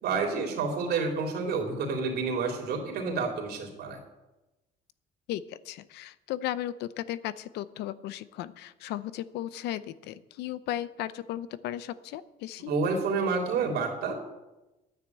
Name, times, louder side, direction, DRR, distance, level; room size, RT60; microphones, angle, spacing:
voice 1, 0.0-4.0 12.7-14.2, right 4 dB, 70° right, 1 dB, 3.4 m, -29 dB
voice 2, 5.3-12.7, left 12 dB, 80° left, 16 dB, 0.7 m, -36 dB
10.5 x 9.4 x 8.1 m, 1.0 s
cardioid pair, 110°, 17 cm